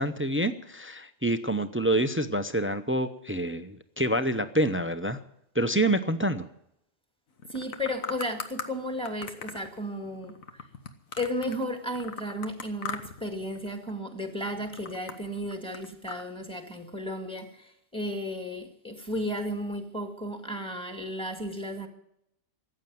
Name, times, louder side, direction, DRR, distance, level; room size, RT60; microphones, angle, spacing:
voice 1, 0.0-5.2 5.5-6.5, right 1 dB, 15° right, 11 dB, 0.4 m, -27 dB
sound 1, 7.4-8.7 9.0-11.6 11.9-13.3 13.5-14.0 14.4-16.2, left 5 dB, 70° left, 1.6 m, -39 dB
voice 2, 7.5-10.6 11.2-21.9, equal, 5° left, 5 dB, 1.9 m, -34 dB
14.5 x 8.8 x 9.4 m, 0.76 s
omnidirectional pair, 1.5 m